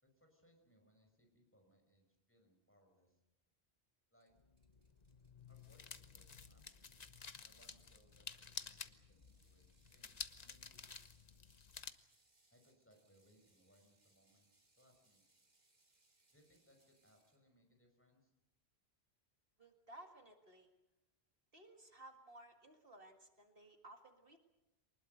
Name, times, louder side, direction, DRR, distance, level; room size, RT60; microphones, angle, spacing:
voice 1, 0.0-3.2 4.1-4.3 5.5-6.8 7.5-10.9 12.5-14.5 14.8-15.5 16.3-18.3, equal, 10° left, 3 dB, 5.4 m, -72 dB
Ratchet pawl, 4.2-17.4, right 2 dB, 40° right, 2.5 m, -77 dB
sound 1, 4.4-11.9, left 5 dB, 40° left, 1.1 m, -52 dB
voice 2, 19.6-20.7 21.5-24.4, right 1 dB, 60° right, 5 dB, 2.2 m, -58 dB
24.0 x 20.0 x 8.0 m, 0.93 s
omnidirectional pair, 1.1 m